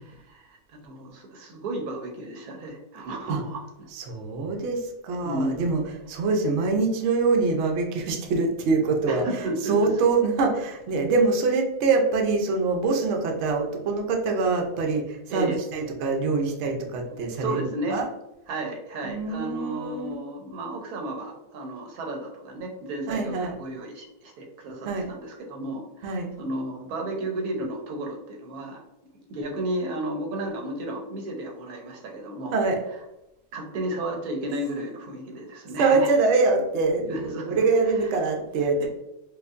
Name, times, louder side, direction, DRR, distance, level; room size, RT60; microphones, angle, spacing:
voice 1, 0.2-3.9 5.2-5.7 9.1-9.9 15.3-15.6 17.4-18.0 18.5-28.8 29.3-32.6 33.5-36.1 37.1-37.6 38.8-38.9, right 1 dB, 90° right, 2 dB, 1.2 m, -33 dB
voice 2, 3.9-5.8 6.1-18.1 19.0-20.2 23.1-23.5 24.8-25.1 26.0-26.3 32.5-32.8 35.8-38.9, right 3 dB, 60° right, 2 dB, 0.8 m, -24 dB
4.5 x 2.5 x 2.4 m, 0.92 s
omnidirectional pair, 1.5 m